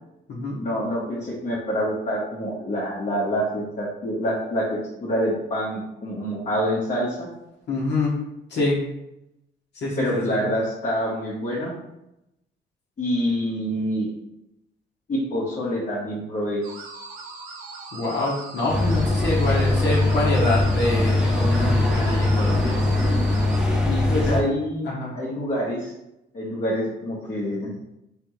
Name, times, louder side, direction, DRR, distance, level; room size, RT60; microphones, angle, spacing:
voice 1, 0.6-7.3 10.0-11.7 13.0-14.1 15.1-16.6 19.4-19.6 24.1-25.9 26.3-27.7, equal, 40° left, -7 dB, 1.1 m, -26 dB
voice 2, 7.7-8.2 8.5-8.8 9.7-10.4 17.9-22.8 23.8-24.4 24.8-25.1, left 2 dB, 60° left, -5 dB, 1.1 m, -26 dB
sound 1, 16.6-23.6, right 3 dB, 90° right, 0.7 m, -40 dB
sound 2, 18.7-24.4, left 2 dB, 5° right, 0.8 m, -21 dB
3.5 x 3.3 x 3.1 m, 0.87 s
cardioid pair, 90°, 20 cm